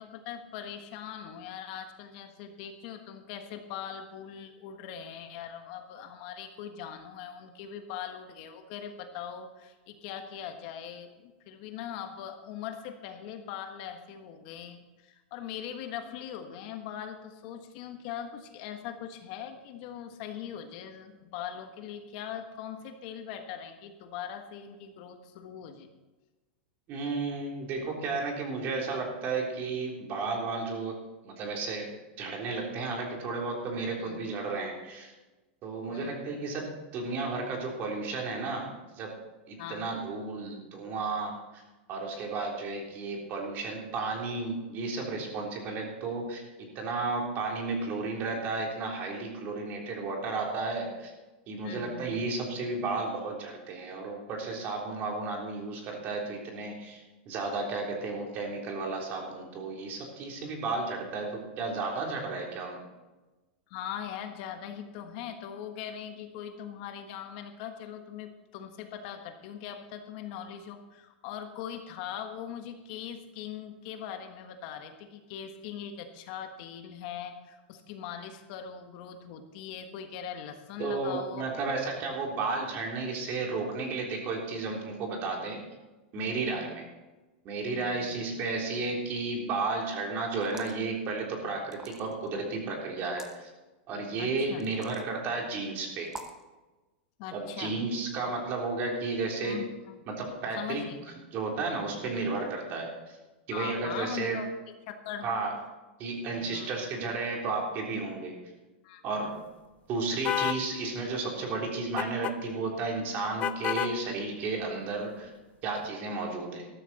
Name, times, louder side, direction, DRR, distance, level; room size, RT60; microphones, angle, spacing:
voice 1, 0.0-25.9 34.0-34.2 35.9-36.3 39.6-40.0 51.6-52.1 63.7-81.4 81.7-81.8 86.5-86.9 87.7-88.2 94.2-94.7 97.2-97.8 99.4-100.0 100.6-101.2 102.0-102.3 103.5-104.5 104.9-105.3 106.0-106.7 108.8-109.0, left 9 dB, 50° left, 6 dB, 1.5 m, -41 dB
voice 2, 26.9-31.0 31.2-31.9 32.2-35.1 35.6-38.7 39.0-39.2 39.5-41.6 41.9-51.1 51.5-62.8 80.8-85.6 86.1-86.9 87.5-93.5 93.9-96.1 97.3-99.6 100.1-100.8 101.3-103.2 103.5-104.4 105.2-105.5 106.0-108.3 109.0-109.3 109.9-115.3 115.6-116.7, right 3 dB, 35° right, 0 dB, 3.6 m, -33 dB
sound 1, 90.4-90.8 91.7-92.3 93.0-93.4 94.6-95.1 96.1-96.4, right 2 dB, 10° right, 1.0 m, -45 dB
sound 2, 110.2-110.6 112.0-112.4 113.4-114.0, left 11 dB, 25° left, 0.5 m, -29 dB
14.0 x 13.0 x 4.3 m, 1.1 s
supercardioid pair, 150°, 6 cm